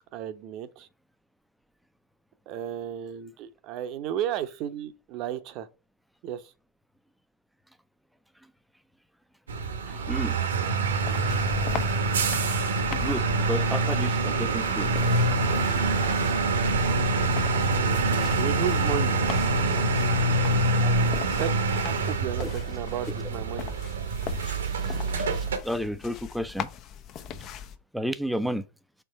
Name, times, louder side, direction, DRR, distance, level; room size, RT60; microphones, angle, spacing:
voice 1, 0.1-0.9 2.5-5.7 6.2-6.4 18.3-19.1 20.8-21.0 21.4-23.7, right 10 dB, 45° right, 0.8 m, -33 dB
sound 1, 9.5-25.6, right 3 dB, 85° right, 1.2 m, -25 dB
voice 2, 9.9-10.4 13.0-14.9 22.4-22.5 24.6-26.7 27.4-27.5 27.9-28.7, equal, ahead, 0.6 m, -32 dB
sound 2, 10.9-27.8, left 9 dB, 40° left, 0.7 m, -40 dB
4.5 x 4.3 x 5.6 m
hypercardioid pair, 110°, 0 cm